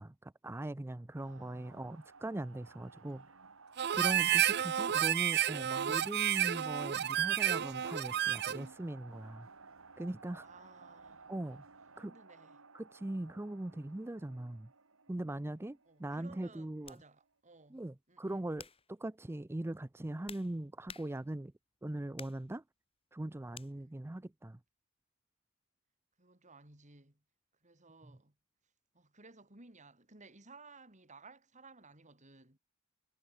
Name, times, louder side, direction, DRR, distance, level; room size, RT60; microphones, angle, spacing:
voice 1, 0.0-3.4 3.9-9.5 10.0-10.5 11.3-11.6 12.0-12.1 12.7-14.7 15.1-17.0 17.7-21.5 21.8-22.6 23.1-24.6 28.0-28.2, right 1 dB, 10° right, 0.4 m, -41 dB
sound 1, 1.1-17.0, right 4 dB, 70° right, 3.3 m, -56 dB
voice 2, 1.3-1.8 2.9-3.3 10.4-11.3 12.0-12.6 15.9-18.5 23.7-23.9 26.2-27.2 27.6-28.3 28.9-32.6, right 3 dB, 35° right, 4.7 m, -58 dB
Harmonica, 3.8-8.7, right 10 dB, 50° right, 0.6 m, -31 dB
sound 2, 15.7-15.8 16.8-17.1 17.7-18.0 18.5-18.9 19.8-21.5 22.1-22.5 23.5-23.7, left 6 dB, 25° left, 4.5 m, -52 dB
head